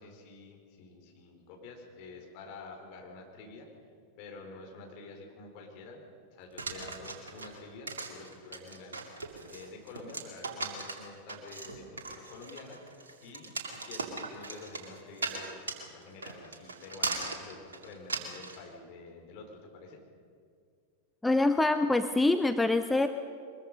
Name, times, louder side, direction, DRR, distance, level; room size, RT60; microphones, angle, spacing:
voice 1, 0.0-3.7 4.2-6.0 6.3-15.6 15.9-20.0, left 3 dB, 45° left, 1 dB, 4.5 m, -48 dB
sound 1, 6.6-18.6, right 3 dB, 70° right, 2.5 m, -38 dB
voice 2, 21.2-23.1, left 2 dB, 5° left, 8 dB, 0.7 m, -25 dB
23.0 x 21.5 x 5.4 m, 2.2 s
figure-of-eight pair, 90°, 0 cm